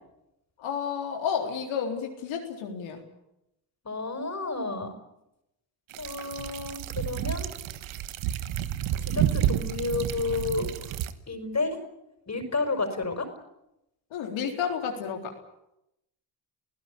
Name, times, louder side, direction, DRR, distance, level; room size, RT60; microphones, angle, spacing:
voice 1, 0.6-3.0 14.1-15.3, left 7 dB, 80° left, 2 dB, 4.0 m, -31 dB
voice 2, 3.8-4.9 6.0-7.5 9.0-11.0 11.3-11.8 12.3-13.3, left 3 dB, 35° left, 7 dB, 5.4 m, -31 dB
sound 1, 5.9-11.1, right 11 dB, 80° right, 1.4 m, -30 dB
30.0 x 16.0 x 8.6 m, 0.87 s
supercardioid pair, 60°, 46 cm